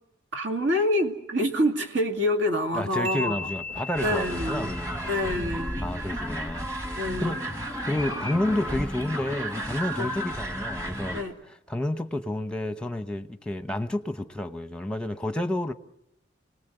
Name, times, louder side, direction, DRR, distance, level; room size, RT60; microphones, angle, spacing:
voice 1, 0.3-3.5 4.0-4.7 5.1-5.8 6.9-7.4 10.0-10.1 11.1-11.3, left 1 dB, 70° right, 2.4 m, -26 dB
voice 2, 2.7-5.4 5.8-7.4 7.8-11.2 11.7-15.7, left 1 dB, 5° left, 0.9 m, -30 dB
sound 1, 3.0-6.6, left 3 dB, 90° right, 4.1 m, -39 dB
sound 2, 3.3-4.0 4.3-5.3 5.9-7.5 7.8-9.1 9.7-10.2, right 1 dB, 40° right, 2.3 m, -47 dB
sound 3, 3.9-11.2, equal, 15° right, 2.1 m, -33 dB
28.5 x 19.5 x 7.9 m
head